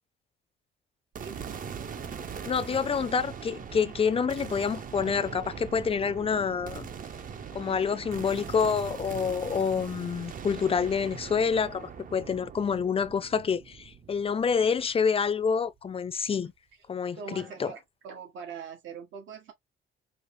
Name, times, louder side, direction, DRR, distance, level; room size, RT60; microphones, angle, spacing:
sound 1, 1.1-15.4, right 7 dB, 45° right, 0.7 m, -41 dB
voice 1, 1.2-1.6 17.1-19.5, right 6 dB, 75° right, 1.3 m, -42 dB
voice 2, 2.5-6.9 7.5-16.5 16.9-17.7, left 6 dB, 30° left, 0.5 m, -27 dB
4.9 x 2.1 x 3.0 m
cardioid pair, 90°, 20 cm